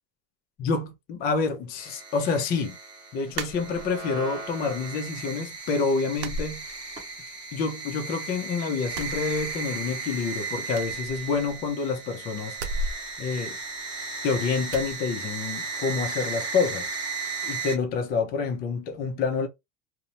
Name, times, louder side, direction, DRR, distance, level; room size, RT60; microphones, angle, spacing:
voice 1, 0.6-2.8 3.1-6.6 7.5-12.6 13.2-13.6 14.2-16.9 17.4-19.5, left 4 dB, 20° left, 0.3 m, -28 dB
sound 1, 1.8-17.8, right 4 dB, 10° right, 0.9 m, -35 dB
sound 2, 3.3-4.2 4.6-5.3 5.6-5.7 6.2-7.3 7.6-8.4 8.8-10.0 10.2-10.3 10.7-11.8 12.5-14.2 14.7-15.0, right 2 dB, 85° right, 0.7 m, -36 dB
2.8 x 2.1 x 2.6 m
supercardioid pair, 125°, 49 cm